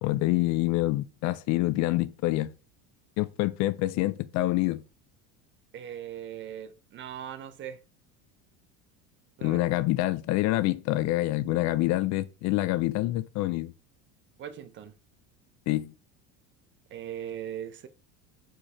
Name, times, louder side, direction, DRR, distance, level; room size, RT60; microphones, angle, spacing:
voice 1, 0.0-2.5 3.2-4.8 9.4-13.7 15.7-15.9, left 17 dB, 50° left, 0.5 m, -26 dB
voice 2, 5.7-7.8 9.4-9.6 14.4-14.9 16.9-17.9, right 10 dB, 30° right, 0.7 m, -39 dB
6.7 x 4.6 x 4.3 m
cardioid pair, 145°, 36 cm